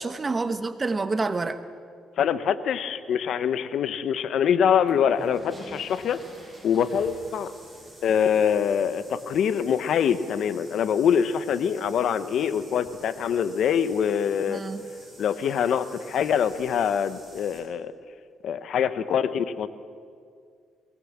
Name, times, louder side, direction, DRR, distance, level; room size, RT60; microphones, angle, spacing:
voice 1, 0.0-1.6 14.5-14.9, right 3 dB, 30° right, 11 dB, 1.3 m, -28 dB
voice 2, 2.2-6.2 6.6-7.5 8.0-14.6 15.2-17.9 18.4-19.7, left 8 dB, 70° left, 13 dB, 1.0 m, -24 dB
sound 1, 4.7-17.6, right 1 dB, 5° right, 7.6 m, -48 dB
22.5 x 19.0 x 7.4 m, 2.2 s
cardioid pair, 90°, 0 cm